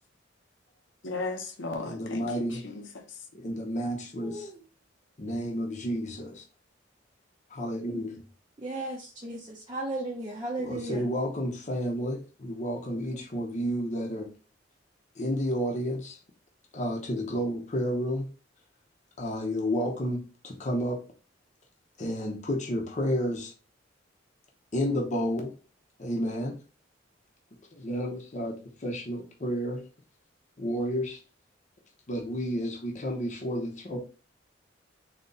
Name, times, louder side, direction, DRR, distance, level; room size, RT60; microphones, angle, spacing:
voice 1, 1.0-3.2, left 3 dB, 70° left, 0.9 m, -36 dB
voice 2, 1.8-2.6 3.3-4.5 5.2-6.4 7.5-8.2 10.6-14.3 15.2-16.2 16.7-18.3 19.2-21.0 22.0-23.5 24.7-25.5 26.0-26.6 27.7-28.5 28.8-29.8 30.6-31.2 32.1-34.0, equal, 40° left, 0.9 m, -31 dB
voice 3, 4.2-4.5 8.6-11.1 13.1-13.2, right 2 dB, 25° right, 0.7 m, -35 dB
4.0 x 3.0 x 3.9 m
head